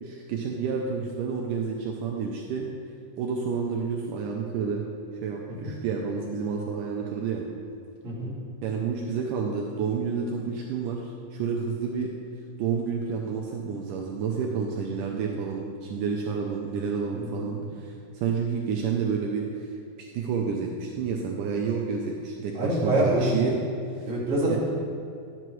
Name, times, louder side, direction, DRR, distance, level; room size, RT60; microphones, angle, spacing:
voice 1, 0.0-2.7 3.2-4.8 5.2-7.4 8.6-12.1 12.6-19.5 20.0-23.6 24.5-24.6, right 6 dB, 90° right, 0 dB, 1.8 m, -29 dB
voice 2, 17.1-17.7 22.5-23.4 24.1-24.6, right 1 dB, 30° right, -7 dB, 1.5 m, -26 dB
11.0 x 7.9 x 3.1 m, 2.5 s
omnidirectional pair, 4.4 m